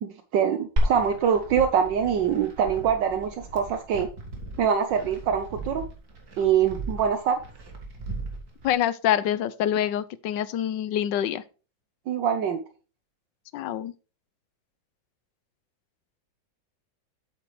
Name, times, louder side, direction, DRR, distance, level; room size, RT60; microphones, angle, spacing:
voice 1, 0.0-4.1 4.6-5.8 6.4-7.4 12.1-12.6, right 7 dB, 75° right, 1.4 m, -24 dB
Glass, 0.8-8.7, right 1 dB, 55° right, 2.4 m, -33 dB
voice 2, 8.6-11.4 13.5-13.9, left 10 dB, 75° left, 1.3 m, -26 dB
8.5 x 8.3 x 3.1 m
omnidirectional pair, 2.1 m